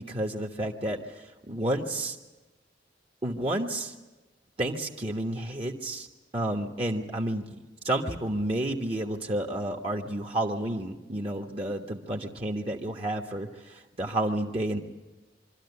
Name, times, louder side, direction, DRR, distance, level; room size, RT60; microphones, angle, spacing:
voice 1, 0.0-2.2 3.2-3.9 4.6-6.1 6.3-7.6 7.8-14.8, right 1 dB, 35° right, 1 dB, 1.3 m, -31 dB
24.5 x 13.0 x 9.7 m, 1.2 s
head